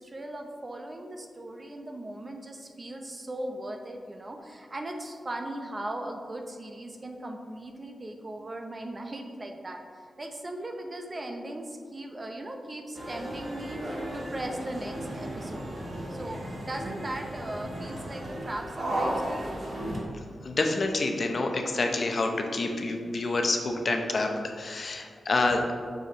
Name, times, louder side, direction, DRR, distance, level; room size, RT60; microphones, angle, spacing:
voice 1, 0.0-15.7 16.1-19.5, right 1 dB, 35° right, 3 dB, 0.7 m, -38 dB
sound 1, 12.9-20.0, right 1 dB, 55° right, 1.2 m, -35 dB
voice 2, 20.4-25.7, left 2 dB, 55° left, 4 dB, 0.6 m, -28 dB
6.4 x 4.9 x 3.0 m, 2.1 s
cardioid pair, 75°, 0 cm